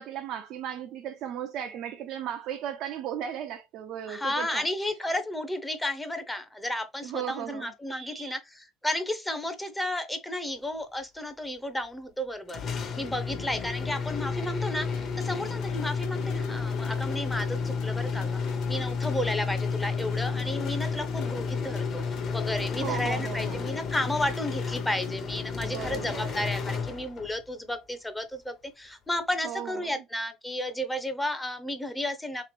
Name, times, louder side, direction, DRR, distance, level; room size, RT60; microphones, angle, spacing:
voice 1, 0.0-4.7 7.0-8.3 22.8-23.8 25.6-26.4 29.4-29.9, right 10 dB, 65° right, 0.5 m, -36 dB
voice 2, 4.1-12.6 13.0-14.9 15.2-32.4, left 1 dB, 10° left, 0.6 m, -33 dB
sound 1, 12.5-27.4, left 5 dB, 40° left, 0.8 m, -31 dB
sound 2, 14.8-25.1, left 10 dB, 80° left, 0.7 m, -47 dB
3.3 x 3.0 x 3.1 m
cardioid pair, 120°, 0 cm